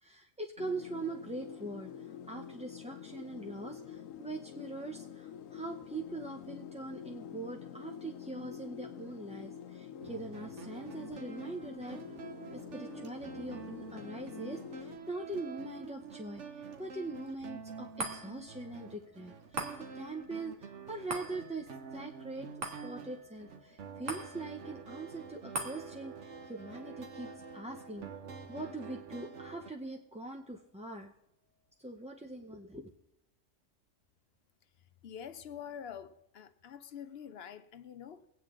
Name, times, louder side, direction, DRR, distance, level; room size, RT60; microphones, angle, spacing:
voice 1, 0.0-12.0 12.5-28.1 28.5-31.1 31.8-32.9, right 2 dB, 10° right, 0.4 m, -42 dB
sound 1, 0.6-15.0, left 8 dB, 90° left, 1.0 m, -47 dB
sound 2, 10.0-29.7, right 5 dB, 65° right, 1.3 m, -48 dB
sound 3, 18.0-30.6 31.0-31.1, right 2 dB, 85° right, 2.0 m, -46 dB
voice 2, 35.0-38.3, left 8 dB, 60° left, 0.8 m, -46 dB
22.5 x 9.0 x 3.7 m
omnidirectional pair, 1.3 m